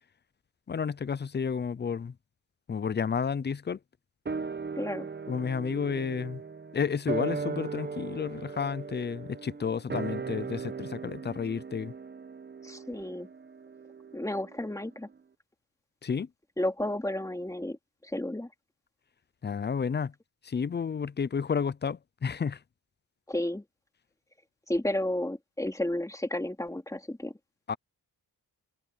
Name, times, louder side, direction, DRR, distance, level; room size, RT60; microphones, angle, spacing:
voice 1, 0.7-2.1 2.7-3.8 5.3-6.4 6.7-11.9 16.0-16.3 19.4-20.1 20.4-22.6 27.7-27.8, left 6 dB, 30° left, 0.5 m, -31 dB
sound 1, 4.3-14.9 15.1-15.2, right 5 dB, 30° right, 1.0 m, -38 dB
voice 2, 4.8-5.1 12.6-13.3 14.1-15.1 16.6-17.8 18.0-18.5 23.3-23.6 24.7-27.3, left 1 dB, 10° left, 2.8 m, -32 dB
wide cardioid pair, 130°, 38 cm